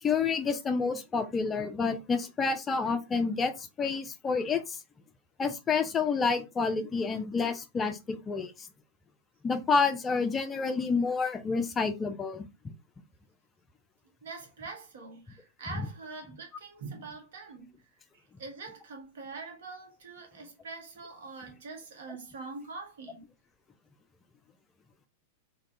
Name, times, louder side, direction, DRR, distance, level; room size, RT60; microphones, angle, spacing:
voice 1, 0.0-4.8 5.4-8.7 9.4-12.4, left 5 dB, 20° left, 0.3 m, -29 dB
voice 2, 14.2-17.7 18.1-23.3, right 4 dB, 65° right, 0.9 m, -44 dB
2.2 x 2.2 x 2.6 m
figure-of-eight pair, 95°, 0 cm